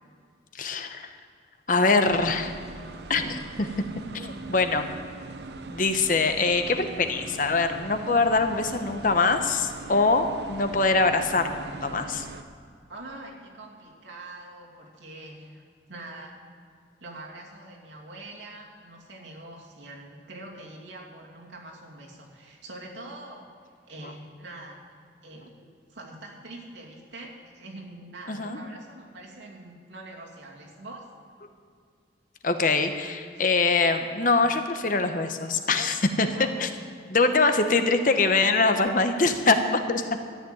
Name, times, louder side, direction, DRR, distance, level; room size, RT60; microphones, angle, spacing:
voice 1, 0.5-1.1 1.7-2.5 3.1-3.7 4.1-4.8 5.7-12.3 28.3-28.6 32.4-36.3 36.6-36.7 37.1-40.0, left 3 dB, 45° left, 7 dB, 0.9 m, -23 dB
sound 1, 2.0-12.4, right 3 dB, 65° right, 0.7 m, -41 dB
voice 2, 12.9-16.4 17.0-23.5 23.9-24.8 25.2-31.1 33.3-33.5 36.3-36.5 37.4-37.5, right 2 dB, 80° right, -2 dB, 2.6 m, -44 dB
13.5 x 7.1 x 9.5 m, 2.2 s
head